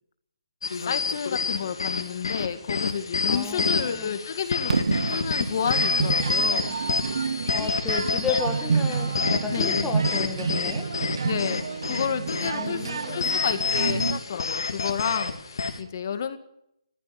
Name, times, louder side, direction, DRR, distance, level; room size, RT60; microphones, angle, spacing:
sound 1, 0.6-15.8, left 4 dB, 60° left, 3.7 m, -28 dB
voice 1, 0.7-4.8 5.1-6.8 9.5-9.9 11.0-16.4, left 7 dB, 35° left, 9 dB, 2.0 m, -31 dB
voice 2, 3.3-4.1 7.5-10.8 12.5-13.4, left 5 dB, 5° left, 2 dB, 1.5 m, -33 dB
Fireworks, 4.7-8.6, right 4 dB, 85° right, 2.0 m, -31 dB
sound 2, 5.6-14.2, right 5 dB, 60° right, 0.9 m, -29 dB
30.0 x 15.0 x 7.0 m, 0.79 s
hypercardioid pair, 170°, 3 cm